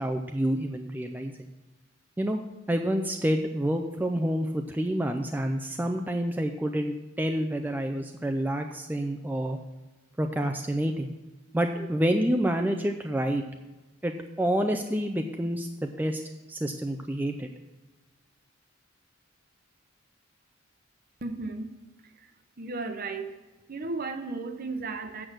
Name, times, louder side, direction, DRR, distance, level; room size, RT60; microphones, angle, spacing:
voice 1, 0.0-1.3 2.2-2.4 2.7-9.6 10.2-11.1 11.5-13.4 14.0-16.2 16.5-17.5, right 1 dB, 10° right, 4 dB, 0.4 m, -28 dB
voice 2, 21.2-22.3 22.6-23.4 23.7-25.3, right 3 dB, 45° right, 8 dB, 0.8 m, -35 dB
8.2 x 6.0 x 6.4 m, 1.2 s
head